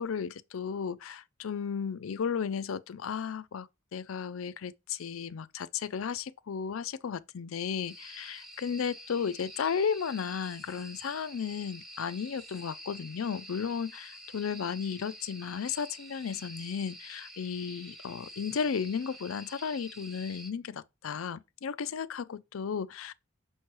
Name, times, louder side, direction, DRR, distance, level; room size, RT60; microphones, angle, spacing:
voice 1, 0.0-23.1, left 6 dB, 75° left, 0.4 m, -34 dB
sound 1, 7.9-20.5, equal, ahead, 0.9 m, -48 dB
6.2 x 3.2 x 5.9 m
head